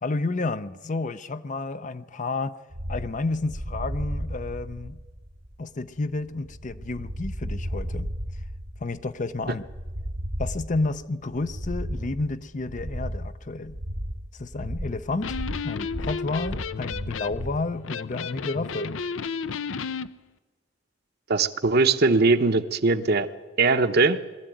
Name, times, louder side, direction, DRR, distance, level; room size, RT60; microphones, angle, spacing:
voice 1, 0.0-2.6 2.9-5.0 5.6-8.1 8.8-9.6 10.4-13.7 14.4-19.0, left 3 dB, 40° left, 13 dB, 0.6 m, -31 dB
sound 1, 2.7-17.6, equal, 80° right, 2.3 m, -34 dB
Electric guitar, 15.1-20.1, left 5 dB, 85° left, 0.6 m, -33 dB
voice 2, 21.3-23.3 23.6-24.2, right 3 dB, 55° right, 9 dB, 1.0 m, -20 dB
21.5 x 14.0 x 9.2 m, 1.3 s
head